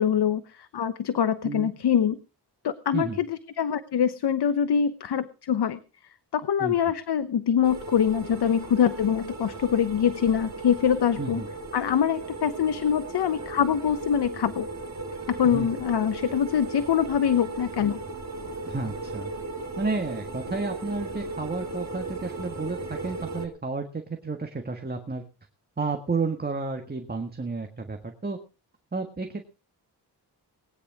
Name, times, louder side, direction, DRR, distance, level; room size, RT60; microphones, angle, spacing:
voice 1, 0.0-2.2 2.6-5.8 6.3-11.4 11.7-14.7 15.3-18.0, left 8 dB, 70° left, 13 dB, 1.0 m, -24 dB
voice 2, 6.6-6.9 11.2-11.5 15.4-15.7 18.6-19.3 19.8-25.2 25.8-28.4 28.9-29.4, right 3 dB, 25° right, 4 dB, 1.6 m, -31 dB
sound 1, 7.6-23.5, right 2 dB, 40° right, 3.7 m, -37 dB
20.0 x 9.9 x 4.8 m, 0.33 s
wide cardioid pair, 130°, 41 cm